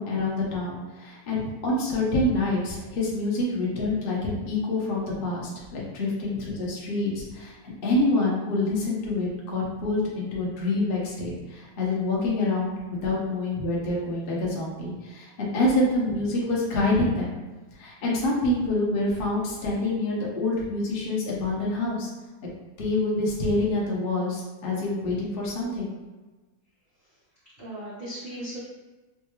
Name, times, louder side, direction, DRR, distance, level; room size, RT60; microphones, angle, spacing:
voice 1, 0.0-17.3 17.7-22.1 22.8-25.9, left 2 dB, 80° left, -4 dB, 0.5 m, -26 dB
voice 2, 27.6-28.6, right 1 dB, 50° right, -10 dB, 0.7 m, -37 dB
4.3 x 2.3 x 3.0 m, 1.2 s
omnidirectional pair, 2.2 m